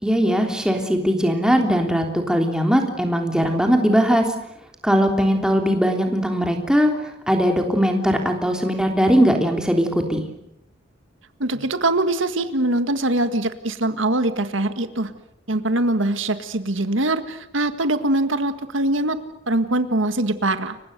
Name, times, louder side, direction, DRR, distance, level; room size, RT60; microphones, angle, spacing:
voice 1, 0.0-4.2 4.8-6.9 7.3-10.2, equal, 5° right, 3 dB, 3.3 m, -19 dB
voice 2, 11.4-15.1 15.5-19.2 19.5-20.8, right 2 dB, 80° right, 10 dB, 1.8 m, -22 dB
30.0 x 24.0 x 6.8 m, 0.81 s
head